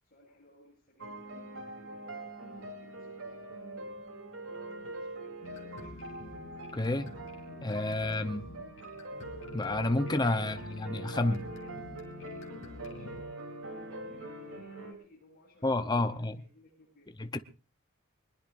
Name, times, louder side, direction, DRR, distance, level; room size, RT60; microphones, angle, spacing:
voice 1, 0.0-4.0 4.9-6.2 12.4-13.5 14.0-17.1, left 1 dB, 40° left, 7.9 m, -60 dB
sound 1, 1.0-14.9, right 2 dB, 65° right, 3.2 m, -43 dB
sound 2, 5.4-13.2, left 3 dB, 55° left, 3.0 m, -47 dB
voice 2, 6.7-7.1 7.6-8.5 9.5-11.4 15.6-16.4 17.2-17.4, left 2 dB, 20° left, 0.7 m, -30 dB
22.5 x 21.0 x 2.6 m
head